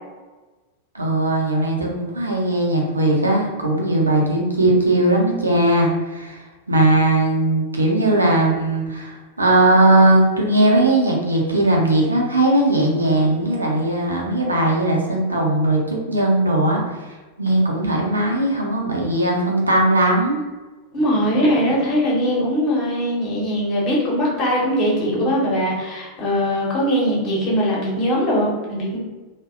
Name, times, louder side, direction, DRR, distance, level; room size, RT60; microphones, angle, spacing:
voice 1, 0.9-16.8 17.4-20.4, right 1 dB, 80° right, -2 dB, 0.5 m, -18 dB
voice 2, 20.9-29.0, equal, 35° left, -4 dB, 0.8 m, -21 dB
2.6 x 2.1 x 2.3 m, 1.2 s
figure-of-eight pair, 90°, 0 cm